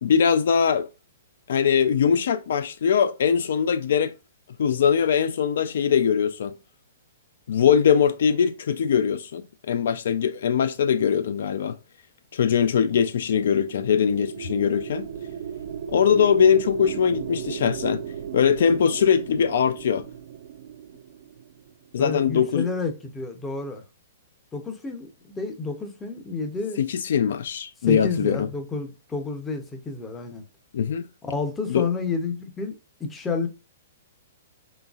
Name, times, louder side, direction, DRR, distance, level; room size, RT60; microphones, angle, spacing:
voice 1, 0.0-0.9 1.5-4.1 4.6-6.6 7.5-11.8 12.3-15.1 15.9-18.0 18.3-20.1 21.9-22.7 26.8-28.5 30.7-31.1 31.7-31.9, left 7 dB, 60° left, 0.3 m, -21 dB
sound 1, 13.6-22.0, right 9 dB, 45° right, 0.4 m, -36 dB
voice 2, 22.0-23.8 24.5-26.8 27.8-30.4 31.2-32.7 33.0-33.5, left 4 dB, 10° left, 0.6 m, -30 dB
4.0 x 3.9 x 2.3 m
hypercardioid pair, 175°, 0 cm